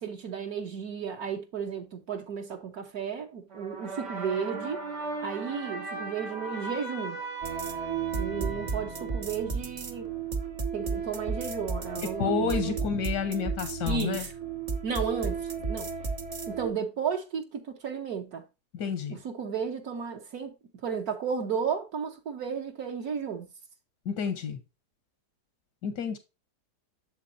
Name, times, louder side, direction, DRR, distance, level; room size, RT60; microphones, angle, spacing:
voice 1, 0.0-4.8 5.2-7.2 8.1-10.1 10.7-12.8 13.9-14.3 14.8-15.9 16.5-18.4 19.1-23.5, right 6 dB, 65° right, 1.4 m, -33 dB
sound 1, 3.5-9.9, right 3 dB, 85° right, 3.0 m, -38 dB
sound 2, 7.4-16.7, right 5 dB, 45° right, 0.5 m, -33 dB
voice 2, 12.2-14.3 18.7-19.2 24.0-24.6 25.8-26.2, left 6 dB, 80° left, 1.6 m, -30 dB
7.3 x 6.9 x 2.5 m
omnidirectional pair, 1.8 m